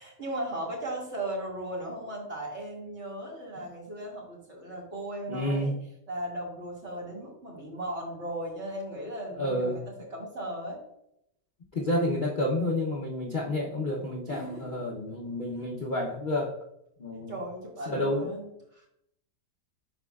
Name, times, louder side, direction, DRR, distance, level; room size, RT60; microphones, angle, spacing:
voice 1, 0.0-5.7 6.1-10.8 14.3-14.8 15.8-15.9 17.3-18.9, right 1 dB, 40° right, -3 dB, 2.3 m, -37 dB
voice 2, 5.3-5.7 9.3-9.8 11.7-16.6 17.0-17.3 17.9-18.3, left 1 dB, 45° left, -2 dB, 0.6 m, -30 dB
11.0 x 4.2 x 2.3 m, 0.78 s
omnidirectional pair, 1.9 m